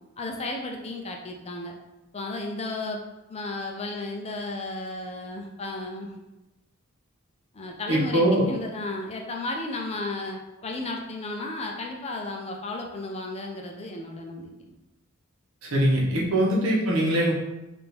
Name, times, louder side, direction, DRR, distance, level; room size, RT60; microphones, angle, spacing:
voice 1, 0.2-1.7 2.1-3.0 3.3-6.2 7.5-14.8, left 2 dB, 30° left, 2 dB, 0.5 m, -34 dB
voice 2, 7.9-8.4 15.7-17.3, right 1 dB, 65° right, -3 dB, 1.1 m, -22 dB
3.6 x 2.6 x 4.3 m, 1.0 s
head